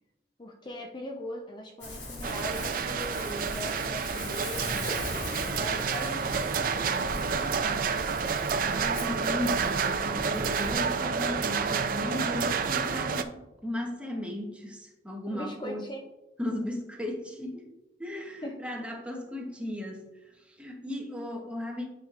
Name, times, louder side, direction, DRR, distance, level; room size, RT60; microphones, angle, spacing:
voice 1, 0.4-4.9 5.5-7.8 15.3-16.0 18.4-18.5, left 1 dB, 25° left, 2 dB, 0.5 m, -40 dB
Ocean, 1.8-10.7, left 2 dB, 75° left, 2.1 m, -40 dB
sound 1, 2.2-13.2, right 5 dB, 50° right, 0.4 m, -29 dB
voice 2, 8.5-13.4 13.6-15.9 16.4-17.6 18.0-20.1 20.4-21.8, left 1 dB, 5° right, 0 dB, 0.9 m, -36 dB
9.1 x 4.8 x 2.4 m, 0.98 s
head